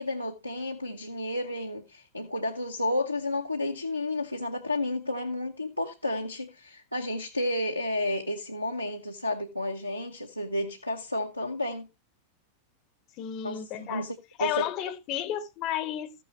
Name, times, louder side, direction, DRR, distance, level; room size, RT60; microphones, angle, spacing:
voice 1, 0.0-11.9 13.4-14.7, left 1 dB, 90° left, 0.9 m, -31 dB
voice 2, 13.2-14.1 14.4-16.1, left 11 dB, 40° left, 0.8 m, -32 dB
14.0 x 6.2 x 3.2 m
figure-of-eight pair, 90°, 0 cm